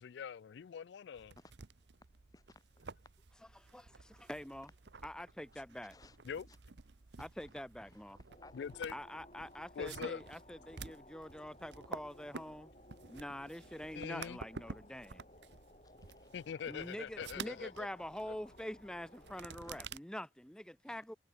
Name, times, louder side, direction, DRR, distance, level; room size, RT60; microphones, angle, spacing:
voice 1, 0.0-1.3 6.3-6.4 8.5-8.9 9.8-10.2 14.0-14.4 16.3-17.9, left 7 dB, 80° left, 0.4 m, -43 dB
voice 2, 1.1-1.5 2.3-2.9 5.9-6.2 6.5-6.6 7.2-7.3 7.9-8.7 15.8-16.3 19.6-19.8 20.9-21.0, left 2 dB, 20° left, 1.4 m, -61 dB
sound 1, 1.1-20.0, right 5 dB, 80° right, 0.9 m, -52 dB
voice 3, 3.5-4.7 5.0-6.0 7.2-8.2 8.9-12.7 13.1-15.2 16.7-21.1, equal, 5° left, 0.6 m, -45 dB
sound 2, 8.3-19.8, left 1 dB, 40° left, 3.9 m, -59 dB
head